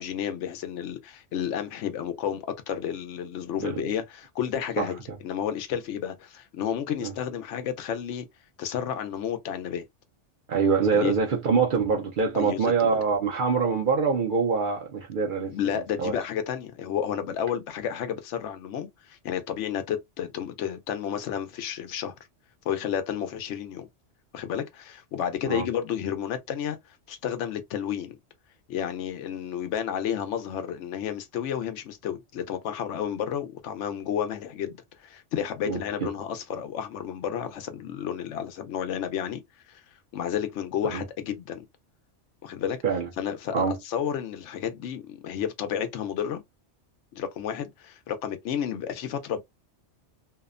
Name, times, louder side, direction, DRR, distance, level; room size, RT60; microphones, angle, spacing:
voice 1, 0.0-8.3 8.6-9.8 10.9-11.1 12.3-13.0 15.5-22.2 22.6-23.9 24.3-28.2 28.7-39.4 39.7-39.8 40.1-41.6 42.4-42.8 43.2-46.4 47.1-49.4, left 9 dB, 80° left, 0.9 m, -31 dB
voice 2, 10.5-15.5 16.0-16.1 25.5-25.6 35.7-36.1 40.9-41.0 42.8-43.1 43.5-43.8, right 5 dB, 55° right, 0.6 m, -24 dB
2.7 x 2.0 x 2.4 m
omnidirectional pair, 1.2 m